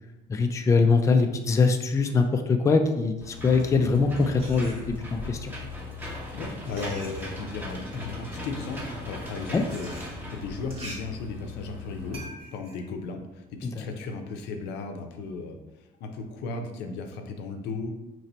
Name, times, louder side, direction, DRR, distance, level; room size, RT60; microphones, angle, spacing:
voice 1, 0.3-5.5 9.5-9.6 13.6-13.8, left 4 dB, 20° left, 5 dB, 0.3 m, -23 dB
Engine / Mechanisms, 3.2-12.2, left 2 dB, 10° right, 0.9 m, -38 dB
sound 1, 3.4-5.3 6.1-14.0, right 1 dB, 35° right, 1.4 m, -47 dB
voice 2, 6.3-17.9, left 4 dB, 85° left, 5 dB, 0.5 m, -36 dB
3.0 x 2.7 x 4.2 m, 0.99 s
cardioid pair, 110°, 17 cm